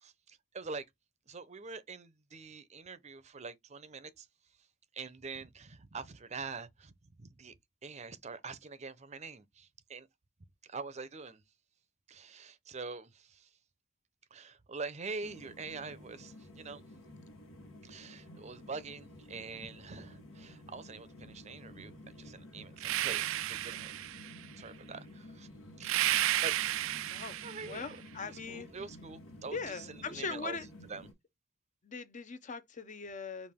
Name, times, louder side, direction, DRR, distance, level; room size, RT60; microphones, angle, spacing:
voice 1, 0.0-0.8 1.3-4.3 4.9-6.9 7.2-7.5 7.8-10.1 10.6-11.4 12.1-13.5 14.3-16.8 17.8-23.9 24.6-25.5 25.8-28.0 28.2-30.6 30.9-31.1, right 4 dB, 35° right, 0.6 m, -45 dB
sound 1, 15.2-31.1, left 1 dB, 85° left, 1.4 m, -52 dB
sound 2, 22.8-24.4 25.8-27.9, right 14 dB, 70° right, 0.3 m, -32 dB
voice 2, 27.6-28.7 29.5-30.7 31.8-33.5, left 4 dB, 35° left, 0.7 m, -40 dB
5.1 x 2.4 x 3.5 m
head